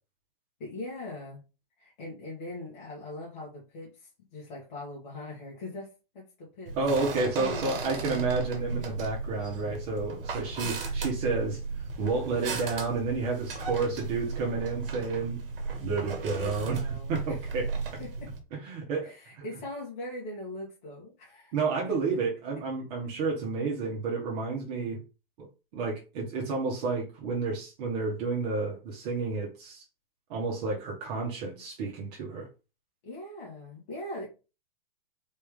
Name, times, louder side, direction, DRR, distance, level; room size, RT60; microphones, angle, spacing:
voice 1, 0.6-1.4 1.8-8.4 10.6-11.0 16.0-17.4 18.0-18.3 19.0-21.5 21.8-21.9 33.0-34.3, left 2 dB, 50° left, -4 dB, 2.1 m, -41 dB
sound 1, 6.7-18.4, right 4 dB, 65° right, 1.5 m, -35 dB
voice 2, 6.8-11.6 12.0-15.4 15.8-17.7 18.5-19.4 21.5-25.0 25.4-25.5 25.7-29.8 30.3-32.5, right 4 dB, 40° right, -2 dB, 1.5 m, -31 dB
4.3 x 3.2 x 3.8 m, 0.31 s
hypercardioid pair, 120°, 30 cm